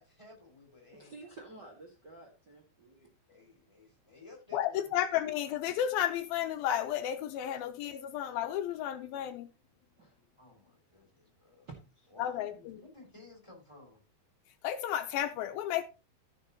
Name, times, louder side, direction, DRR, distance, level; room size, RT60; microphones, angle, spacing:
voice 1, 0.0-1.2 3.3-4.9 10.4-11.7 12.1-14.0, left 2 dB, 5° left, 4.8 m, -55 dB
voice 2, 0.9-3.1 3.5-3.7 4.1-4.4 10.0-10.2 11.7-12.1, right 3 dB, 35° right, 1.9 m, -52 dB
voice 3, 4.5-9.5 12.2-12.8 14.6-15.8, left 11 dB, 80° left, 2.5 m, -32 dB
15.0 x 6.6 x 2.9 m
omnidirectional pair, 4.4 m